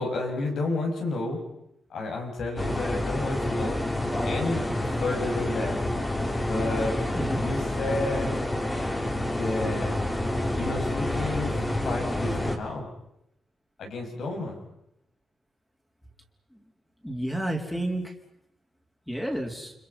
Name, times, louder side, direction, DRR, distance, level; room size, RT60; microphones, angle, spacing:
voice 1, 0.0-1.4 1.9-3.8 4.2-4.7 5.0-5.8 6.4-7.0 7.4-8.4 9.3-9.9 10.6-11.6 11.8-12.9 13.8-14.6, left 2 dB, 80° left, 1 dB, 7.4 m, -31 dB
sound 1, 2.6-12.6, left 1 dB, 20° left, 3.2 m, -28 dB
voice 2, 17.0-18.1 19.1-19.7, right 1 dB, 5° left, 1 dB, 3.7 m, -30 dB
30.0 x 25.5 x 5.7 m, 0.82 s
cardioid pair, 120°, 0 cm